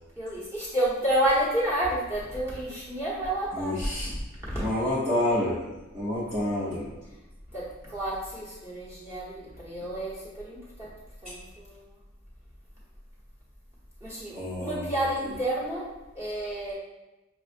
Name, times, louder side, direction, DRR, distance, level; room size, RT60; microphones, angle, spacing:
voice 1, 0.2-4.6 7.1-7.2 7.5-10.9 11.2-12.0 14.0-15.9 16.1-16.7, right 1 dB, 15° right, -8 dB, 1.1 m, -30 dB
voice 2, 3.6-4.1 4.6-6.9 14.3-14.9, left 1 dB, 30° right, -9 dB, 0.7 m, -28 dB
5.7 x 2.4 x 2.5 m, 1.0 s
head